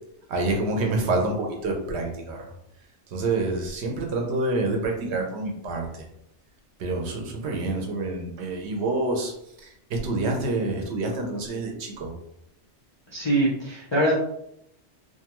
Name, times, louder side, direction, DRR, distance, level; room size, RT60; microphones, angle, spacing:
voice 1, 0.3-2.5 3.1-6.1 6.8-9.3 9.6-12.1, right 2 dB, 70° right, 2 dB, 0.8 m, -27 dB
voice 2, 13.1-14.1, right 1 dB, 45° left, -5 dB, 0.3 m, -23 dB
2.6 x 2.3 x 2.9 m, 0.78 s
omnidirectional pair, 1.2 m